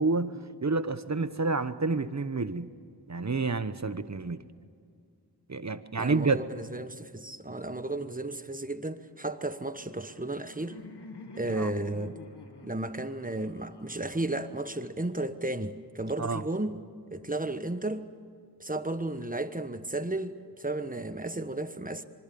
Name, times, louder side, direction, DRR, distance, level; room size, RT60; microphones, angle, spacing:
voice 1, 0.0-2.7 3.1-4.4 5.5-6.4 11.5-11.7 16.2-16.4, right 3 dB, 40° right, 1.1 m, -29 dB
voice 2, 6.0-10.8 11.4-12.2 12.6-16.8 17.1-18.1 18.6-22.0, right 2 dB, 20° right, 1.3 m, -34 dB
Laughter, 9.8-14.8, left 3 dB, 75° left, 1.6 m, -48 dB
26.0 x 24.5 x 7.0 m
wide cardioid pair, 50°, 40 cm